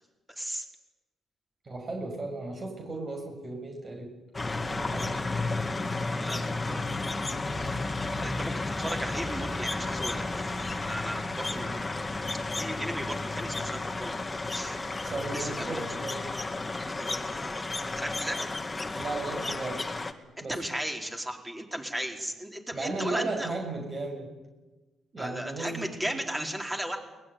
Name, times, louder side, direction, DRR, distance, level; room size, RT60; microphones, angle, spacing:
voice 1, 1.6-4.1 4.7-5.2 15.0-16.3 19.0-19.8 20.4-20.6 22.7-24.3 25.1-26.1, right 2 dB, 35° right, 2 dB, 6.4 m, -35 dB
sound 1, 4.3-20.1, left 2 dB, 20° left, 2.1 m, -32 dB
voice 2, 6.2-6.8 7.5-7.7 8.2-8.5 8.8-11.9 12.5-14.8 15.3-15.8 16.9-18.5 20.4-23.6 25.2-27.0, right 1 dB, 10° right, 2 dB, 4.5 m, -36 dB
22.5 x 20.0 x 9.5 m, 1.1 s
cardioid pair, 90°, 0 cm